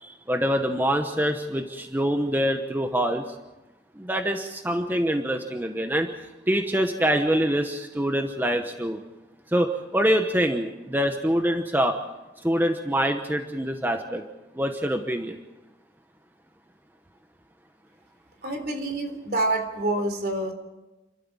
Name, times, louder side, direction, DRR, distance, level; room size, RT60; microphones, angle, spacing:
voice 1, 0.0-3.3 4.0-6.1 6.5-9.0 9.5-12.0 12.4-14.2 14.5-15.4, equal, 10° right, 5 dB, 1.0 m, -25 dB
voice 2, 18.4-20.5, right 2 dB, 60° right, 6 dB, 3.5 m, -27 dB
29.0 x 13.0 x 7.3 m, 1.1 s
head